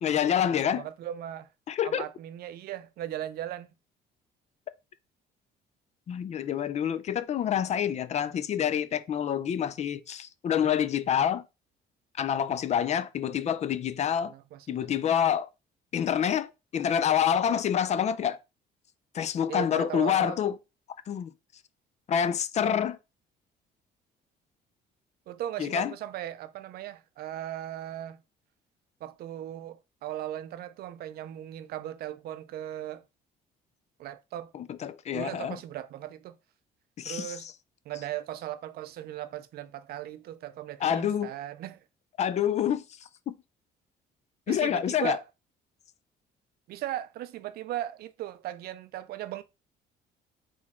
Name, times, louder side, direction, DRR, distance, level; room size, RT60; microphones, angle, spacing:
voice 1, 0.0-0.9 1.7-2.1 6.1-11.4 12.2-14.3 14.7-15.5 15.9-18.4 19.1-20.6 21.1-21.3 22.1-23.0 25.6-25.9 34.5-35.6 37.0-37.5 40.8-41.3 42.2-42.8 43.3-43.4 44.5-45.2, left 9 dB, 40° left, 0.4 m, -27 dB
voice 2, 0.6-1.5 1.8-3.7 14.2-14.9 19.5-20.5 25.3-28.2 29.0-33.0 34.0-34.5 35.1-36.4 37.0-37.5 37.9-41.8 44.5-45.2 46.7-49.4, right 12 dB, 65° right, 0.5 m, -37 dB
4.0 x 3.1 x 3.5 m
cardioid pair, 110°, 17 cm